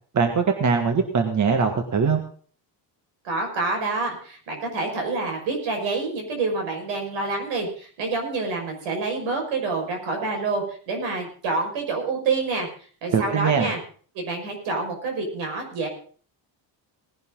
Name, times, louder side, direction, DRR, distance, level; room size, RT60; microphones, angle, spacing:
voice 1, 0.1-2.2 13.1-13.7, right 5 dB, 40° right, 5 dB, 1.8 m, -21 dB
voice 2, 3.2-12.7 13.0-13.8 14.1-15.9, right 3 dB, 85° right, 2 dB, 5.7 m, -27 dB
18.5 x 11.0 x 3.9 m, 0.43 s
cardioid pair, 110°, 44 cm